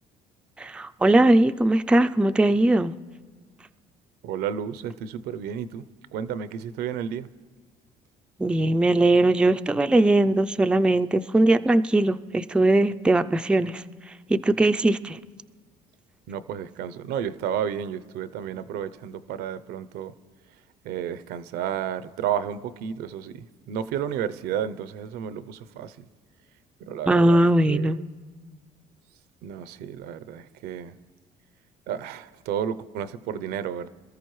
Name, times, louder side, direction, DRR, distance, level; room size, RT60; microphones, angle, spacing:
voice 1, 0.6-2.9 8.4-13.8 14.3-15.2 27.1-28.0, right 1 dB, 5° right, 0.3 m, -20 dB
voice 2, 4.2-5.8 6.1-7.3 16.3-20.1 20.8-26.1 26.8-28.1 29.4-31.0 31.9-33.9, right 9 dB, 80° right, 0.6 m, -32 dB
26.0 x 13.5 x 3.1 m
cardioid pair, 100°, 16 cm